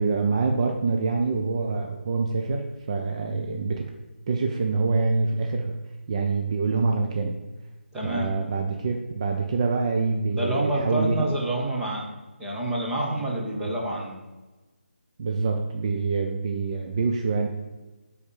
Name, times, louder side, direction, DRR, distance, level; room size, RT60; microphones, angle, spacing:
voice 1, 0.0-3.9 4.3-5.8 6.1-7.4 8.0-11.1 13.6-13.8 15.2-17.5, right 4 dB, 30° right, 2 dB, 0.7 m, -26 dB
voice 2, 7.9-8.3 10.4-12.1 12.4-14.2, right 1 dB, 5° right, -5 dB, 1.4 m, -27 dB
9.7 x 4.4 x 7.2 m, 1.2 s
figure-of-eight pair, 160°, 7 cm